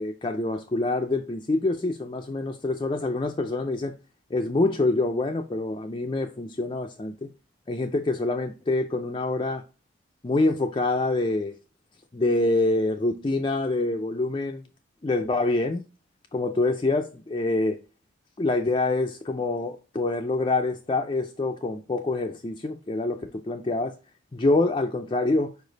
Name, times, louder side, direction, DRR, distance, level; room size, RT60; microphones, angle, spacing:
voice 1, 0.0-3.9 4.3-7.3 7.7-9.6 10.2-11.5 12.1-14.6 15.0-15.8 16.3-17.8 18.4-24.0 24.3-25.5, left 2 dB, 25° left, 0.3 m, -26 dB
4.9 x 4.9 x 3.9 m
head